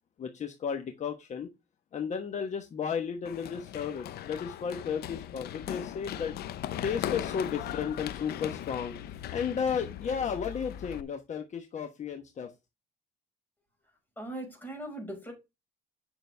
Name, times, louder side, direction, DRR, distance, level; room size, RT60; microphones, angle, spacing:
voice 1, 0.2-1.5 1.9-6.3 6.8-12.5, left 7 dB, 45° left, 1.2 m, -34 dB
Run, 3.2-11.0, left 11 dB, 70° left, 0.8 m, -38 dB
voice 2, 14.2-15.3, right 1 dB, 10° left, 5.5 m, -39 dB
9.4 x 6.2 x 3.4 m
cardioid pair, 110°, 17 cm